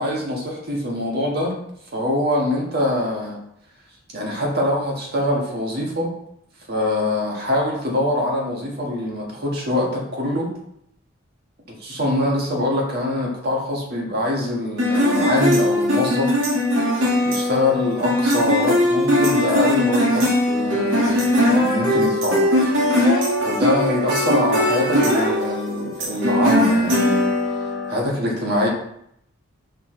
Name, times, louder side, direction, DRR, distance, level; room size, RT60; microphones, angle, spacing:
voice 1, 0.0-1.6 1.9-3.4 4.1-6.1 6.7-10.5 11.7-16.3 17.2-22.5 23.4-27.3 27.5-27.6 27.9-28.7, left 1 dB, 50° right, -2 dB, 1.6 m, -23 dB
sound 1, 14.8-28.0, left 1 dB, 70° right, 2.0 m, -20 dB
5.5 x 4.7 x 3.8 m, 0.74 s
head